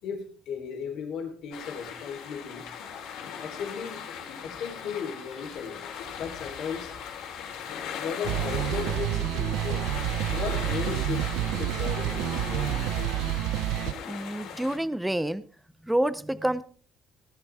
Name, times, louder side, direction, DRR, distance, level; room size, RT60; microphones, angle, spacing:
voice 1, 0.0-2.7 3.4-4.0 4.4-6.9 8.0-9.9 10.3-12.8, left 6 dB, 55° left, 0 dB, 3.6 m, -36 dB
sound 1, 1.5-14.8, left 7 dB, 75° left, 3.7 m, -38 dB
sound 2, 8.2-13.9, right 14 dB, 80° right, 0.5 m, -29 dB
voice 2, 14.1-15.4 15.9-16.6, right 1 dB, 5° right, 16 dB, 0.5 m, -28 dB
17.5 x 12.0 x 3.5 m, 0.41 s
cardioid pair, 175°, 0 cm